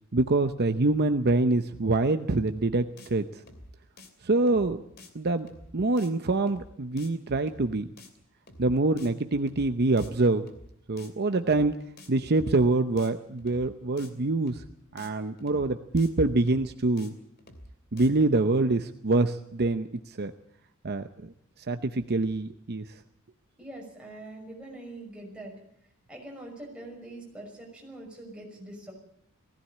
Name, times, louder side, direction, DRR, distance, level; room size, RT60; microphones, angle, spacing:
voice 1, 0.1-3.3 4.2-4.8 5.1-5.5 5.7-7.9 8.6-10.5 10.9-11.7 12.1-14.6 14.9-17.1 17.9-20.3 20.8-21.3 21.7-22.8, right 2 dB, 50° right, 9 dB, 0.8 m, -25 dB
sound 1, 2.5-2.7 3.0-3.1 3.4-3.7 4.0-4.1 4.5-4.7 5.0-5.1 5.4-5.7 6.0-6.1 6.5-6.7 7.0-7.1 7.4-7.7 8.0-8.1 8.5-8.7 9.0-9.1 9.4-9.7 10.0-10.1 10.5-10.7 11.0-11.1 11.4-11.7 12.0-12.1 12.5-12.7 13.0-13.1 13.4-13.7 14.0-14.1 14.5-14.7 15.0-15.1 15.4-15.7 16.0-16.1 16.5-16.7 17.0-17.1 17.4-17.7 18.0-18.1, left 2 dB, 50° left, 2.9 m, -49 dB
voice 2, 23.6-25.5 26.1-28.9, right 1 dB, 5° right, -1 dB, 6.0 m, -43 dB
19.0 x 16.0 x 8.5 m, 0.72 s
head